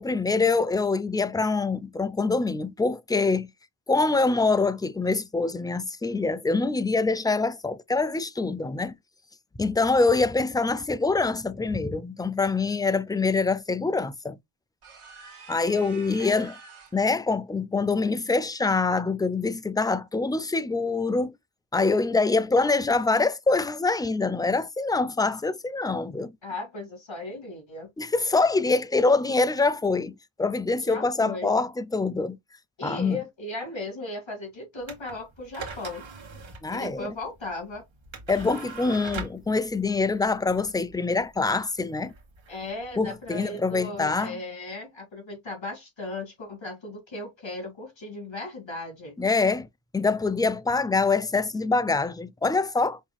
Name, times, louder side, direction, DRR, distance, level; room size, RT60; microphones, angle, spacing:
voice 1, 0.0-3.5 3.9-8.9 9.6-14.4 15.5-16.5 16.9-21.3 21.7-26.3 28.0-32.4 32.8-33.2 36.6-37.1 38.3-42.1 43.0-44.4 49.2-49.7 49.9-53.0, left 3 dB, 10° left, 0.3 m, -25 dB
sound 1, 14.8-17.1, right 3 dB, 85° right, 1.6 m, -46 dB
voice 2, 26.4-27.9 30.9-31.5 32.8-36.0 36.3-36.4 36.7-37.8 42.5-49.2, left 2 dB, 65° left, 2.3 m, -37 dB
sound 2, 34.8-43.3, right 4 dB, 65° right, 1.4 m, -42 dB
5.5 x 3.0 x 2.2 m
wide cardioid pair, 75°, 50 cm